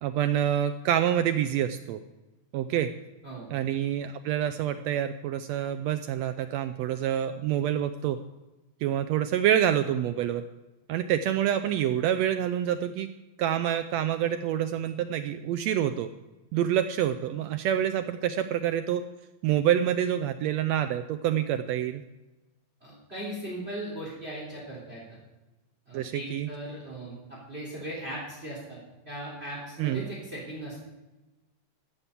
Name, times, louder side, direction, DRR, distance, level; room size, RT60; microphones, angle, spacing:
voice 1, 0.0-2.0 2.5-2.9 3.5-8.2 8.8-10.4 10.9-13.1 13.4-16.1 16.5-19.0 19.4-22.0 25.9-26.5 29.8-30.0, right 10 dB, 80° right, 10 dB, 1.5 m, -27 dB
voice 2, 22.8-25.0 25.9-28.8 29.1-30.8, right 1 dB, 20° right, -4 dB, 3.6 m, -38 dB
14.5 x 7.2 x 6.9 m, 1.1 s
omnidirectional pair, 3.5 m